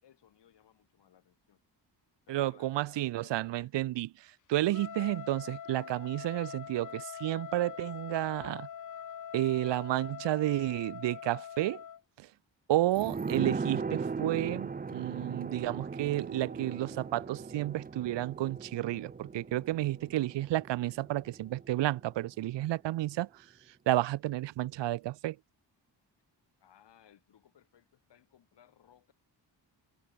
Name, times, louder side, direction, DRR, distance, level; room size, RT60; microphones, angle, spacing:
voice 1, 0.0-1.6 2.3-3.7 26.6-29.1, left 10 dB, 75° left, 6.9 m, -62 dB
voice 2, 2.3-4.1 4.5-8.7 9.3-11.8 12.2-12.3 12.7-23.3 23.9-25.4, right 15 dB, 90° right, 0.7 m, -31 dB
Trumpet, 4.7-12.0, left 9 dB, 45° left, 1.4 m, -44 dB
sound 1, 12.9-22.2 22.5-22.6, right 5 dB, 20° right, 0.9 m, -38 dB
wide cardioid pair, 170°, 42 cm